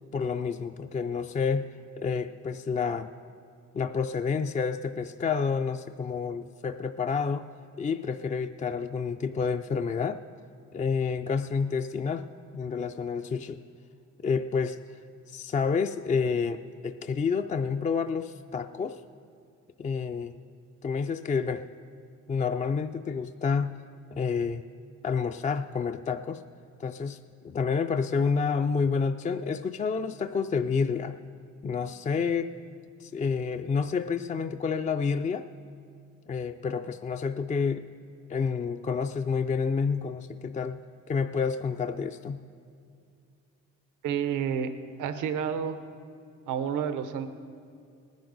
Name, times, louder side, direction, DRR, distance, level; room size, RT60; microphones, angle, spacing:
voice 1, 0.1-1.7 2.0-3.1 3.7-7.5 7.8-10.2 10.7-12.3 12.5-13.6 14.2-14.8 15.3-19.0 19.8-20.4 20.8-21.6 22.3-23.8 24.1-24.6 25.0-26.4 26.8-27.2 27.4-31.2 31.6-32.5 33.0-35.5 36.3-37.8 38.3-40.8 41.1-42.4, left 5 dB, 25° left, 8 dB, 0.3 m, -29 dB
voice 2, 44.0-44.7 45.0-45.8 46.5-47.3, right 8 dB, 85° right, 10 dB, 0.8 m, -29 dB
18.5 x 10.5 x 4.0 m, 2.4 s
cardioid pair, 90°, 30 cm